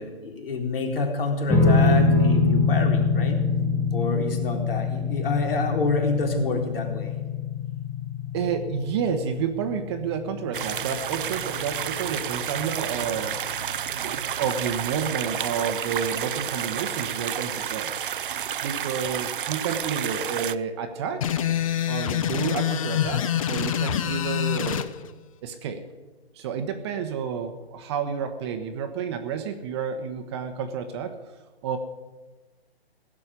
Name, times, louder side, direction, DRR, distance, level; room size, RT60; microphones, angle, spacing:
voice 1, 0.0-3.4 3.9-7.2, left 3 dB, 60° left, 2 dB, 3.9 m, -28 dB
sound 1, 1.5-14.0, left 4 dB, 5° left, 1.0 m, -25 dB
voice 2, 8.3-13.4 13.9-18.0 18.6-21.4 21.9-24.9 25.4-25.8 26.3-31.2 31.6-31.8, right 7 dB, 25° right, 7 dB, 1.0 m, -30 dB
sound 2, 10.5-20.6, right 9 dB, 55° right, 0.6 m, -30 dB
sound 3, 21.2-24.9, left 10 dB, 30° left, 0.8 m, -26 dB
16.5 x 7.5 x 9.9 m, 1.2 s
hypercardioid pair, 150°, 32 cm